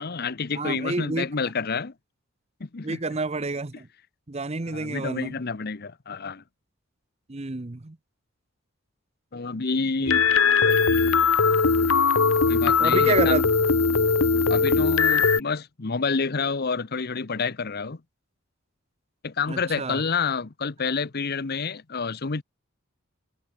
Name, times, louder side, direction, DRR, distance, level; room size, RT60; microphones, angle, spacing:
voice 1, 0.0-1.9 2.6-3.0 4.7-6.4 9.3-10.3 12.5-13.4 14.5-18.0 19.2-22.4, left 4 dB, 50° left, 0.8 m, -28 dB
voice 2, 0.5-1.3 2.8-3.9 4.3-5.3 7.3-8.0 10.4-10.8 12.8-13.4 19.5-20.0, right 3 dB, 30° right, 0.8 m, -29 dB
sound 1, 10.1-15.4, left 5 dB, 80° left, 1.2 m, -20 dB
head